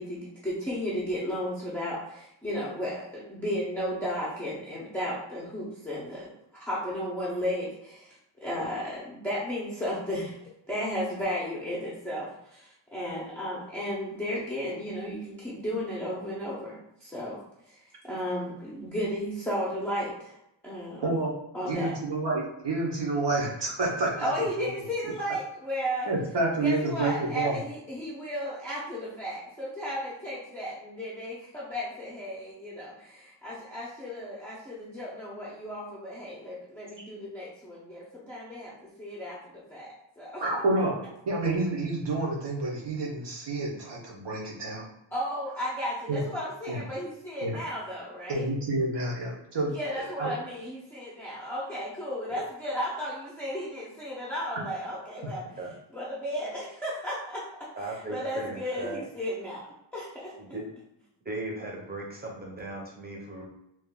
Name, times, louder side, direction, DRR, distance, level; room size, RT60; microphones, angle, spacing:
voice 1, 0.0-8.2 8.4-17.4 17.7-20.4 20.6-21.1 21.5-21.9 24.2-26.1 26.6-40.4 45.1-48.4 49.7-55.4 55.9-60.4, equal, 5° left, -8 dB, 0.7 m, -34 dB
voice 2, 21.7-24.3 24.6-24.7 26.1-27.6 40.4-41.0 41.2-44.9 46.1-46.2 46.7-46.8 47.4-47.6 48.3-49.8 50.2-50.3, right 2 dB, 60° right, -2 dB, 1.1 m, -29 dB
voice 3, 49.9-50.3 52.3-52.4 55.6-55.7 57.8-59.0 60.4-60.6 61.2-63.5, right 2 dB, 20° right, -2 dB, 0.9 m, -38 dB
3.1 x 2.5 x 3.7 m, 0.80 s
wide cardioid pair, 155°, 48 cm